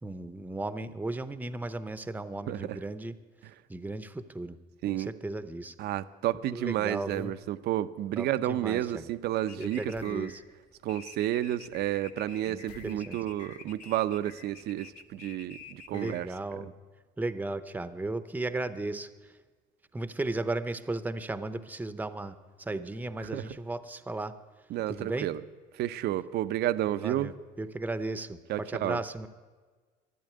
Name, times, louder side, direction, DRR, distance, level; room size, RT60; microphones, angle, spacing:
voice 1, 0.0-3.1 3.7-4.6 4.9-5.7 6.5-7.3 8.2-9.1 9.6-10.4 12.5-13.2 15.9-16.7 17.2-19.1 19.9-24.3 24.9-25.3 26.9-29.3, right 2 dB, 10° right, 12 dB, 0.7 m, -35 dB
voice 2, 2.5-2.8 3.4-3.5 4.8-5.1 5.8-10.3 10.8-16.7 23.2-23.5 24.7-25.4 25.7-27.3 28.5-29.0, right 13 dB, 75° right, 13 dB, 0.7 m, -31 dB
sound 1, 7.1-7.4 9.9-10.3 12.7-13.5, left 5 dB, 85° left, 1.1 m, -53 dB
sound 2, 9.5-16.6, left 5 dB, 45° left, 1.6 m, -49 dB
12.5 x 11.0 x 9.3 m, 1.4 s
cardioid pair, 110°, 17 cm